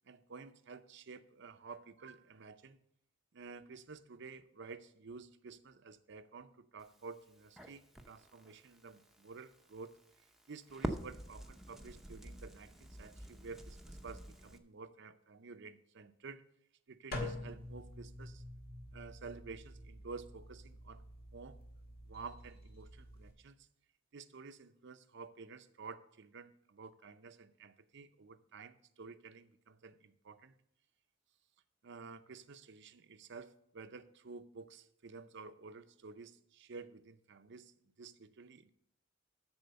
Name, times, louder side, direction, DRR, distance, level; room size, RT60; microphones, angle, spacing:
voice 1, 0.0-2.8 3.3-9.9 10.5-16.4 16.9-18.4 18.9-21.0 21.3-21.6 22.0-23.7 24.1-30.6 31.8-38.7, right 4 dB, 60° right, 11 dB, 0.6 m, -51 dB
Crackle, 6.8-14.6, right 1 dB, ahead, 0.7 m, -47 dB
sound 1, 17.1-23.3, left 1 dB, 50° left, 2.0 m, -47 dB
13.0 x 4.4 x 6.7 m, 0.75 s
head